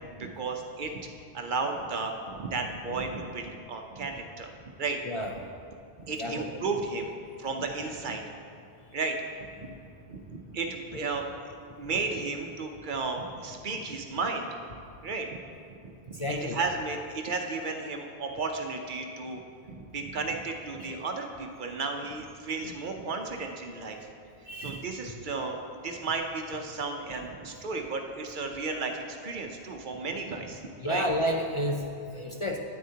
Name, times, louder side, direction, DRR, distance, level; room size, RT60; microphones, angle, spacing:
voice 1, 0.1-0.9 1.3-4.5 4.8-5.0 6.0-7.1 7.4-8.2 8.9-9.8 10.1-11.3 11.8-14.5 15.0-15.4 15.8-19.4 19.7-24.0 24.6-31.0, right 3 dB, 55° right, 3 dB, 0.8 m, -34 dB
voice 2, 6.2-6.6 16.1-16.6 24.5-24.9 30.8-32.6, equal, 45° left, 2 dB, 0.4 m, -31 dB
9.8 x 8.6 x 2.8 m, 2.4 s
omnidirectional pair, 1.1 m